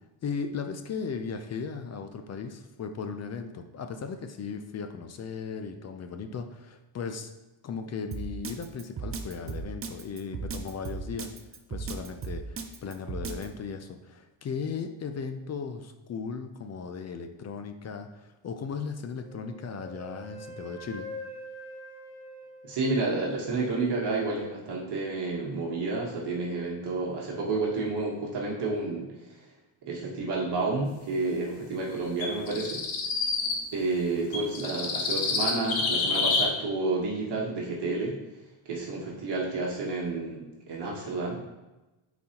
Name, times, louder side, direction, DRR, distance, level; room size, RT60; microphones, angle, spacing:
voice 1, 0.2-7.3 7.6-11.3 11.7-21.1, left 5 dB, 35° left, 7 dB, 0.4 m, -37 dB
Drum kit, 8.1-13.5, right 5 dB, 30° right, 0.5 m, -35 dB
Wind instrument woodwind instrument, 19.2-23.4, equal, 10° right, 2.1 m, -44 dB
voice 2, 22.6-29.1 29.9-32.8 33.7-38.2 38.6-41.4, right 3 dB, 55° right, -3 dB, 1.3 m, -30 dB
sound 1, 32.2-33.6 34.3-36.4, left 4 dB, 65° left, 1.2 m, -27 dB
8.3 x 4.1 x 2.9 m, 1.1 s
cardioid pair, 135°, 50 cm